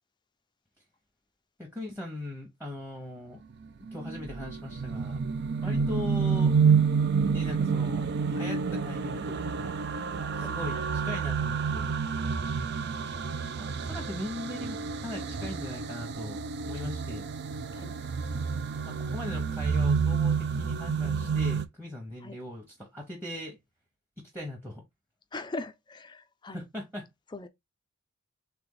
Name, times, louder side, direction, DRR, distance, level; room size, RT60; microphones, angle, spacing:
voice 1, 1.6-3.4 3.9-5.2 5.6-6.5 7.3-9.8 10.3-11.9 13.0-13.3 13.5-16.4 16.7-17.3 18.8-23.6 24.3-24.8 26.5-27.1, left 1 dB, 10° right, 0.9 m, -40 dB
sound 1, 3.6-21.7, right 5 dB, 50° right, 0.4 m, -29 dB
voice 2, 25.3-26.6 27.3-27.5, left 2 dB, 20° left, 0.4 m, -41 dB
3.4 x 3.3 x 3.8 m
head